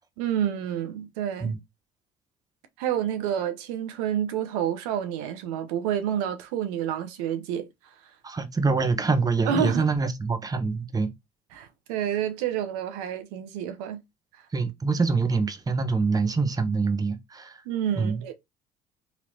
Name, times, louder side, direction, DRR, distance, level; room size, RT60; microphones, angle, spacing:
voice 1, 0.2-1.5 2.8-7.7 9.5-9.8 11.5-14.0 17.7-18.3, right 9 dB, 80° right, 0.5 m, -29 dB
voice 2, 8.2-11.1 14.5-17.6 18.0-18.2, right 4 dB, 20° right, 0.7 m, -25 dB
3.1 x 2.9 x 2.6 m
hypercardioid pair, 70°, 20 cm